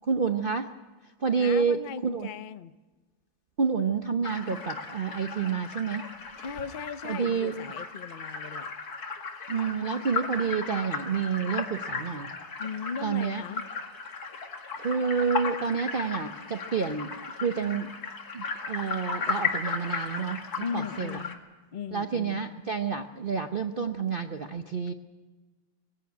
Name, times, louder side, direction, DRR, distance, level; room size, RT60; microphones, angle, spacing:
voice 1, 0.0-0.7 1.2-2.3 3.6-6.1 7.0-7.6 9.5-12.3 13.0-13.4 14.8-17.9 18.3-20.4 20.7-21.2 21.9-24.9, right 6 dB, 45° right, 7 dB, 0.7 m, -29 dB
voice 2, 1.4-2.7 6.4-8.7 12.6-13.6 20.6-21.4 21.7-22.4, left 6 dB, 75° left, 12 dB, 0.4 m, -37 dB
sound 1, 4.2-21.3, left 4 dB, 55° left, 2.5 m, -36 dB
21.5 x 17.0 x 9.3 m, 1.3 s
omnidirectional pair, 2.0 m